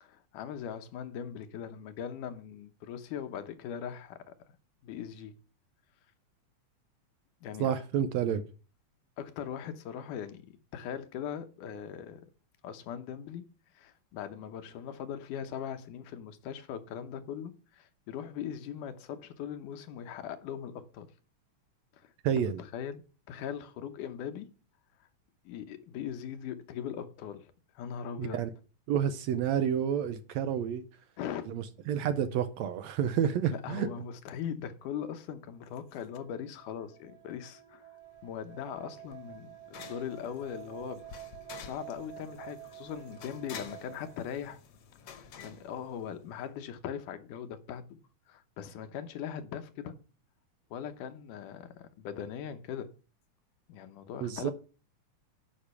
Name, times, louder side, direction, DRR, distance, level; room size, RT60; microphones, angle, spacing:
voice 1, 0.0-4.3 4.8-5.3 7.4-7.8 9.2-12.2 12.6-13.4 13.7-21.1 21.9-23.0 23.3-24.5 25.5-28.4 31.2-31.5 33.5-37.9 38.2-41.1 41.5-44.6 45.1-48.0 48.3-49.9 50.7-52.9 53.7-54.5, left 8 dB, 85° left, 2.5 m, -40 dB
voice 2, 7.6-8.4 22.2-22.6 28.2-28.5 28.9-30.8 31.5-33.9 54.2-54.5, right 9 dB, 75° right, 1.7 m, -29 dB
sound 1, 35.8-44.2, right 14 dB, 55° right, 2.6 m, -49 dB
sound 2, 38.2-46.5, left 7 dB, 60° left, 1.9 m, -50 dB
10.0 x 5.2 x 6.9 m
omnidirectional pair, 3.6 m